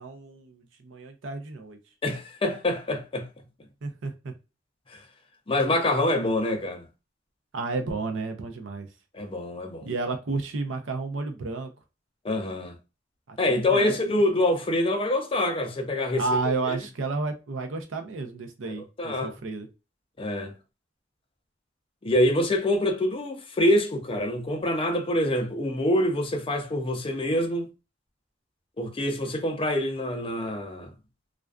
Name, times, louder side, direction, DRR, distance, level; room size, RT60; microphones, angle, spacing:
voice 1, 0.0-1.8 3.8-4.3 7.5-8.9 9.8-11.7 13.3-14.0 16.2-19.7, right 3 dB, 80° right, 0.5 m, -31 dB
voice 2, 2.0-3.3 4.9-5.0 5.5-6.9 9.1-9.9 12.2-12.8 13.4-16.8 18.7-19.3 20.2-20.5 22.0-27.7 28.8-30.9, left 1 dB, 30° left, 0.5 m, -26 dB
2.4 x 2.2 x 2.3 m
head